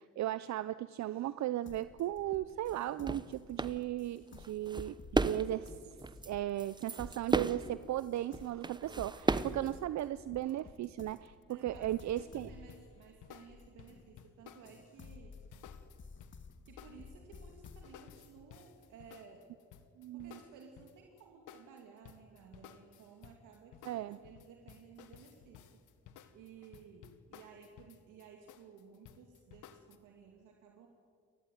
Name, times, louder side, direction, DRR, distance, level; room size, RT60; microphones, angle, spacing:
voice 1, 0.0-5.7 6.3-12.5 20.0-20.4 23.8-24.2, right 13 dB, 65° right, 15 dB, 0.6 m, -36 dB
sound 1, 1.6-14.2 14.7-17.9, left 5 dB, 40° left, 1.9 m, -55 dB
sound 2, 2.7-2.8 3.0-3.3 3.6-3.8 4.4-5.7 6.0-6.3 6.6-7.7 8.3-9.7, right 3 dB, 15° right, 0.9 m, -34 dB
voice 2, 11.5-15.4 16.6-19.5 20.1-25.8 26.3-30.9, right 6 dB, 90° right, 1 dB, 2.6 m, -56 dB
sound 3, 12.7-21.2 21.5-30.0, left 9 dB, 85° left, 1.5 m, -56 dB
29.0 x 14.0 x 9.5 m, 2.1 s
cardioid pair, 90°, 30 cm